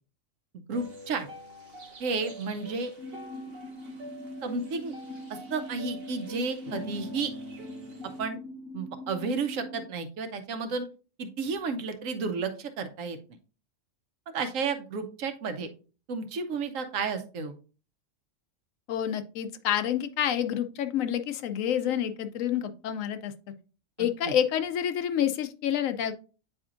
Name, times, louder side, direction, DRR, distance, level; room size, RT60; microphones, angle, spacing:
sound 1, 0.7-8.2, left 1 dB, 50° right, 1.2 m, -45 dB
voice 1, 0.7-1.3 2.0-2.9 4.4-4.9 5.3-7.3 8.2-8.4 8.7-10.9 11.2-13.2 14.3-15.7 16.1-17.5 24.0-24.3, right 4 dB, 80° right, 8 dB, 1.1 m, -32 dB
sound 2, 3.0-9.8, equal, 10° left, 1.8 m, -43 dB
voice 2, 18.9-23.3 24.0-26.1, left 10 dB, 80° left, 9 dB, 1.0 m, -28 dB
8.5 x 4.4 x 2.5 m, 0.36 s
omnidirectional pair, 1.4 m